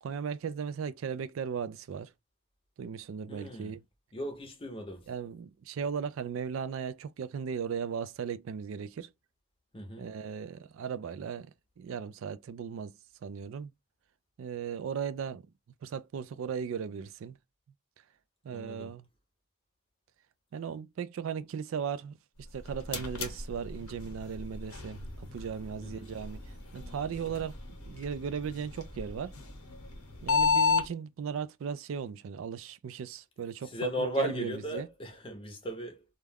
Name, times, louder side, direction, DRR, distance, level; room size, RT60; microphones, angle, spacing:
voice 1, 0.0-2.1 2.8-3.8 5.1-9.1 10.0-13.7 14.4-15.5 15.8-17.4 18.4-19.1 20.5-22.2 22.5-27.6 27.9-29.3 30.2-34.9, right 6 dB, 60° right, 0.3 m, -37 dB
voice 2, 3.3-3.7 4.1-5.1 9.7-10.1 18.5-18.9 25.8-26.1 33.7-36.0, equal, 25° left, 0.6 m, -36 dB
sound 1, 22.4-30.9, left 4 dB, 80° left, 0.8 m, -34 dB
2.3 x 2.2 x 3.3 m
head